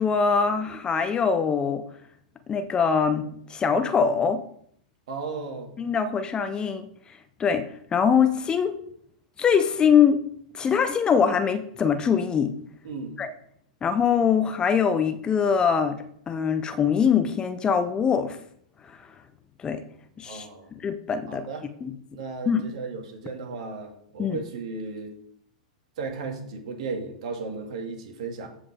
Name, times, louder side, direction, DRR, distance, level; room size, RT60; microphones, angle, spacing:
voice 1, 0.0-1.8 2.5-4.4 5.8-6.9 7.4-8.8 9.4-10.2 10.5-12.5 13.2-13.3 13.8-16.0 16.3-18.4 19.6-19.8 20.2-20.5 20.7-21.5 21.8-21.9 22.5-22.7 24.2-24.4, left 6 dB, 20° left, 9 dB, 0.8 m, -23 dB
voice 2, 5.1-5.7 12.8-13.2 20.3-20.7 21.3-21.7 22.1-25.1 26.0-28.5, right 4 dB, 60° right, 3 dB, 2.2 m, -35 dB
14.0 x 5.1 x 3.6 m, 0.66 s
hypercardioid pair, 105°, 4 cm